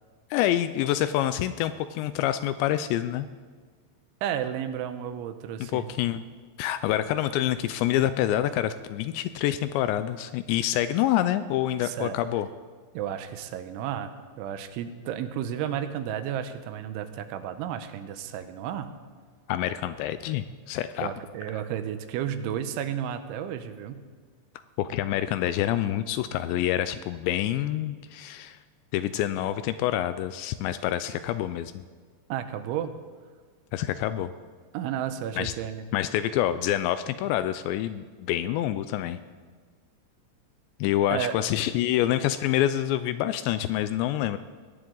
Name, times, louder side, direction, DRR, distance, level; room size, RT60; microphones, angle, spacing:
voice 1, 0.3-3.3 5.7-6.2 6.6-12.5 19.5-21.1 24.8-28.6 28.9-31.8 33.7-34.3 35.4-35.5 35.9-39.2 40.8-44.4, left 12 dB, 80° left, 12 dB, 2.6 m, -27 dB
voice 2, 4.2-5.9 11.8-12.2 12.9-18.9 21.0-24.0 32.3-32.9 34.7-35.8 41.1-41.3, right 9 dB, 85° right, 9 dB, 3.3 m, -32 dB
21.0 x 17.5 x 3.9 m, 1.6 s
omnidirectional pair, 5.4 m